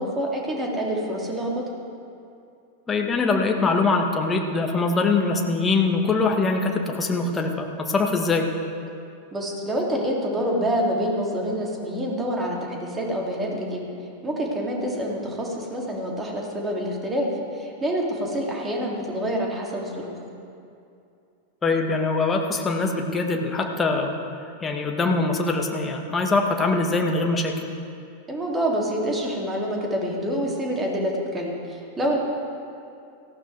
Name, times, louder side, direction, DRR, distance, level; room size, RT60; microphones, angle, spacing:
voice 1, 0.0-1.6 9.3-13.8 14.2-17.3 17.5-20.1 28.3-32.2, equal, 15° right, -2 dB, 3.1 m, -27 dB
voice 2, 2.9-8.5 21.6-24.1 24.6-27.7, left 3 dB, 15° left, 2 dB, 1.7 m, -23 dB
18.0 x 16.0 x 3.6 m, 2.5 s
figure-of-eight pair, 90°, 0 cm